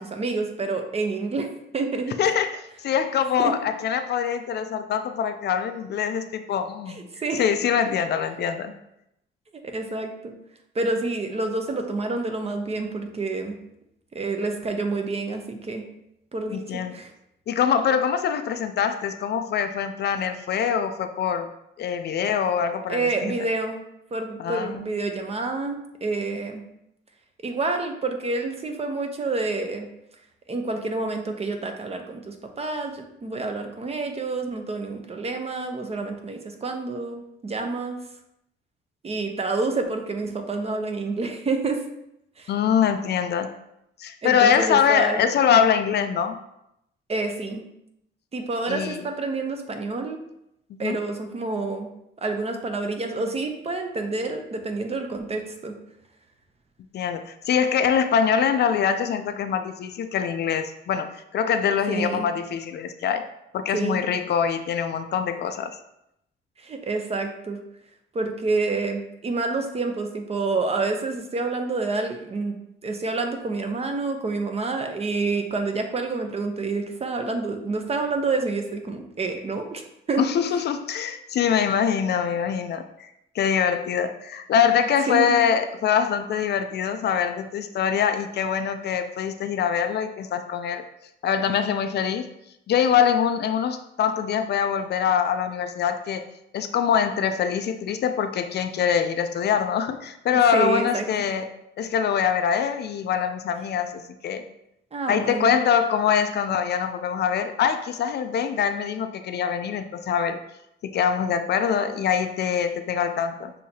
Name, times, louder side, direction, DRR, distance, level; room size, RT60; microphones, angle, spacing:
voice 1, 0.0-1.5 1.7-2.2 3.4-3.5 6.9-7.4 9.7-10.3 10.7-13.6 14.1-15.9 16.3-17.1 22.9-23.8 24.1-26.6 27.4-29.9 30.5-38.0 39.0-41.8 42.4-42.5 44.2-45.3 47.1-47.6 48.3-50.2 50.8-51.9 52.2-55.7 61.9-62.3 63.7-64.0 66.6-67.6 68.1-80.3 85.1-85.4 100.3-101.1 104.9-105.5, right 3 dB, 30° right, 5 dB, 0.7 m, -28 dB
voice 2, 2.2-7.1 7.3-8.7 16.5-16.9 17.5-21.5 21.8-23.4 24.4-24.9 42.5-43.5 44.0-46.4 48.7-49.0 50.7-51.0 56.9-63.3 63.5-65.8 80.2-83.1 83.3-90.8 91.2-92.3 92.7-96.3 96.5-101.5 101.8-104.4 105.1-110.4 110.8-113.5, left 7 dB, 55° left, 8 dB, 0.4 m, -24 dB
6.4 x 2.8 x 2.8 m, 0.81 s
cardioid pair, 90°, 20 cm